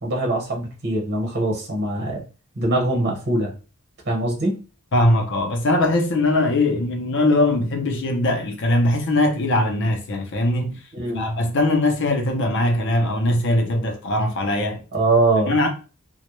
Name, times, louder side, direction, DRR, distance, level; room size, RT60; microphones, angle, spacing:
voice 1, 0.0-2.2 2.6-3.5 4.1-4.6 10.9-11.2 14.9-15.5, right 2 dB, 50° right, 1.0 m, -22 dB
voice 2, 4.9-10.8 11.1-14.8 15.5-15.7, left 1 dB, 60° left, 0.6 m, -21 dB
2.1 x 2.1 x 2.9 m
head